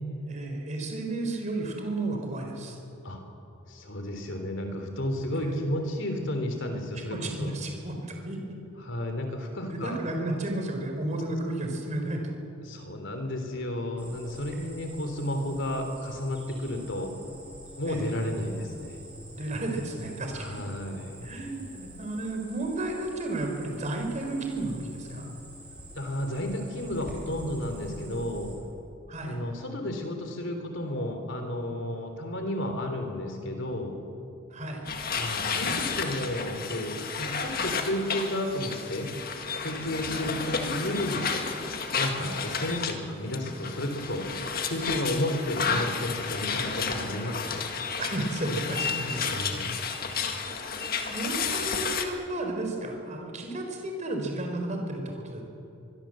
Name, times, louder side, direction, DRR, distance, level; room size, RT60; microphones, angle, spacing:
voice 1, 0.2-2.8 5.3-5.6 6.9-8.4 9.7-12.3 17.9-18.1 19.3-20.6 21.2-25.3 29.1-29.4 34.5-34.9 40.1-40.3 42.2-42.4 48.0-49.4 51.1-55.4, right 2 dB, 35° right, 2 dB, 4.3 m, -33 dB
voice 2, 3.7-7.5 8.8-10.0 12.6-17.1 17.8-19.0 20.4-21.3 26.0-28.5 29.3-34.0 35.1-39.1 39.6-41.3 42.0-44.3 44.6-47.6 49.0-49.9, left 1 dB, 60° left, 5 dB, 3.5 m, -32 dB
Cricket, 14.0-28.5, right 1 dB, 5° right, 4.8 m, -47 dB
sound 1, 34.8-42.9 43.3-52.0, left 5 dB, 45° left, 1.8 m, -32 dB
24.0 x 22.5 x 7.7 m, 2.9 s
head